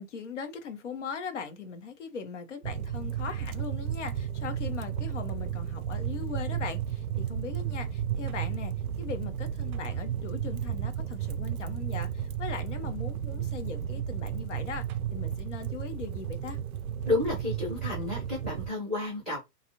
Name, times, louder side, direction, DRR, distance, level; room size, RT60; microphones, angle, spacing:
voice 1, 0.0-14.8 15.1-16.6, left 5 dB, 50° left, 0.7 m, -39 dB
sound 1, 2.6-18.7, right 9 dB, 65° right, 0.5 m, -33 dB
voice 2, 17.0-19.4, left 2 dB, ahead, 0.4 m, -31 dB
2.7 x 2.4 x 2.8 m
hypercardioid pair, 140°, 48 cm